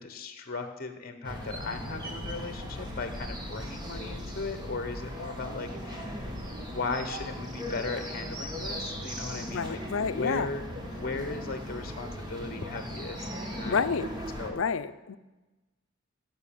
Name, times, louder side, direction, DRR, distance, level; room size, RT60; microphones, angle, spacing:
voice 1, 0.0-6.1 6.5-9.8 10.1-10.6 10.9-13.8 14.4-14.6, left 3 dB, 45° left, 8 dB, 1.0 m, -37 dB
sound 1, 1.2-14.5, equal, 20° right, 1.6 m, -38 dB
voice 2, 9.3-10.5 13.7-14.1 14.5-15.2, left 5 dB, 70° left, 12 dB, 0.6 m, -29 dB
16.0 x 5.8 x 7.1 m, 1.1 s
head